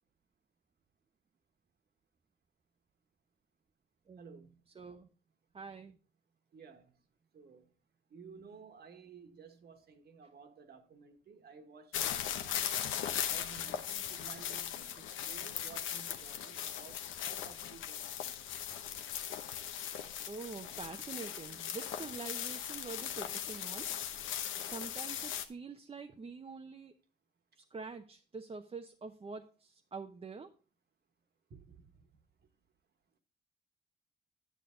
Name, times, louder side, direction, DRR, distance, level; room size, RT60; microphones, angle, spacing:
voice 1, 4.2-4.5 6.5-6.9 7.3-7.7 8.1-12.7 13.1-18.4 31.5-32.1, right 5 dB, 55° right, 1.5 m, -54 dB
voice 2, 4.7-5.1 5.5-6.0 20.3-23.9 24.4-26.9 27.6-30.5, right 4 dB, 30° right, 0.7 m, -46 dB
sound 1, 11.9-25.5, left 9 dB, 85° left, 0.9 m, -39 dB
10.0 x 6.4 x 3.8 m
cardioid pair, 90°, 20 cm